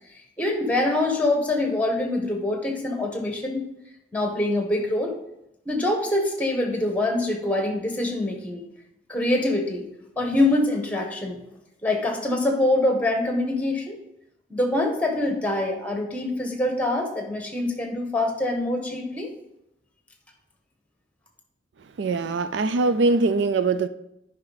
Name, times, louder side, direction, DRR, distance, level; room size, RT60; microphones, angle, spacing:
voice 1, 0.4-3.6 4.1-5.1 5.6-8.6 9.1-9.8 10.2-11.4 11.8-14.0 14.5-19.3, left 2 dB, 10° left, 2 dB, 1.4 m, -24 dB
voice 2, 22.0-23.9, right 3 dB, 70° right, 12 dB, 0.4 m, -22 dB
9.8 x 5.6 x 4.1 m, 0.83 s
head